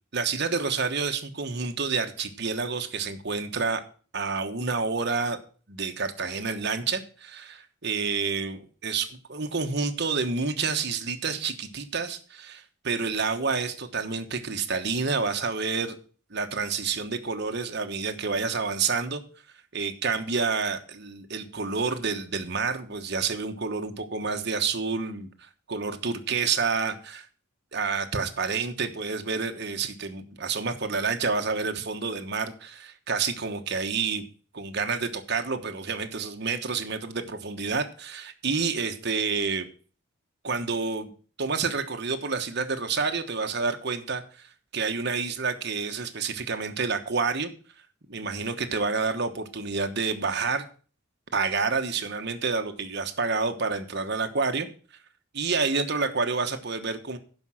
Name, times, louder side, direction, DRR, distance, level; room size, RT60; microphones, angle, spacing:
voice 1, 0.1-3.8 4.1-5.4 5.7-16.0 16.3-19.2 19.7-25.3 25.7-27.3 27.7-34.3 34.5-39.7 40.4-41.1 41.4-47.5 48.1-50.7 51.3-54.7 55.3-57.2, right 4 dB, 55° right, 6 dB, 1.2 m, -29 dB
12.0 x 5.4 x 6.3 m, 0.41 s
head